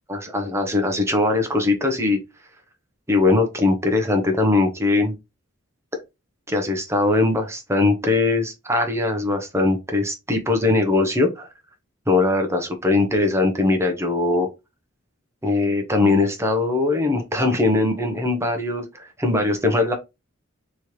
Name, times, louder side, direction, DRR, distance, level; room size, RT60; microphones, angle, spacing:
voice 1, 0.1-2.2 3.1-5.1 6.5-11.5 12.1-14.5 15.4-19.9, left 2 dB, 15° right, 1.0 m, -21 dB
4.3 x 3.2 x 3.1 m
head